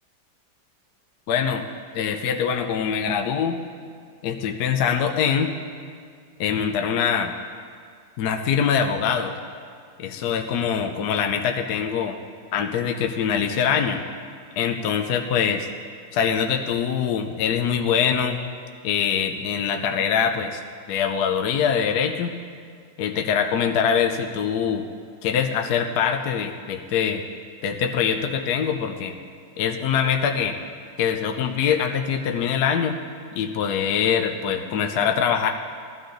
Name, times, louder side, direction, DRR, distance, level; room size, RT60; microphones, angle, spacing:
voice 1, 1.3-1.6 1.9-3.6 4.2-5.5 6.4-7.3 8.2-9.3 10.0-12.2 12.5-14.0 14.6-15.7 16.1-18.4 18.8-20.6 20.9-22.3 23.0-24.9 25.2-27.2 27.6-29.2 29.6-30.6 31.0-33.0 33.3-35.5, left 7 dB, 65° left, 3 dB, 1.2 m, -23 dB
19.5 x 13.0 x 3.9 m, 2.1 s
omnidirectional pair, 2.2 m